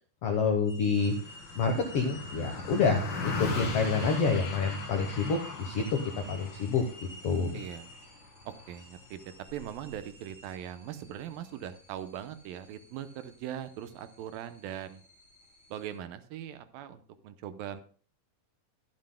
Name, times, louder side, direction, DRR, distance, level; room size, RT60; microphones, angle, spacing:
voice 1, 0.2-1.1 1.5-6.8 7.2-7.6, left 5 dB, 65° left, 4 dB, 1.4 m, -28 dB
sound 1, 0.6-16.0, equal, 15° left, 3.3 m, -52 dB
Car passing by, 1.0-10.6, left 5 dB, 40° left, 1.9 m, -39 dB
voice 2, 7.5-7.9 8.5-15.0 15.7-17.8, right 10 dB, 80° right, 10 dB, 2.4 m, -40 dB
22.5 x 7.6 x 2.2 m, 0.41 s
omnidirectional pair, 4.2 m